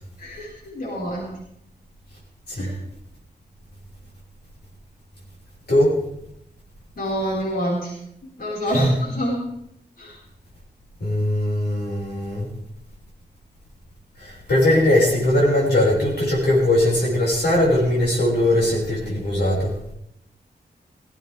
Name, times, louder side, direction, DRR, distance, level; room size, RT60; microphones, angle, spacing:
voice 1, 0.2-1.3 2.6-2.7 7.0-7.9 8.4-9.4 10.0-10.2, equal, 60° left, -5 dB, 5.6 m, -27 dB
voice 2, 11.0-12.5 14.2-19.7, left 1 dB, 80° left, -5 dB, 6.2 m, -20 dB
18.0 x 16.5 x 3.7 m, 0.77 s
wide cardioid pair, 130°, 17 cm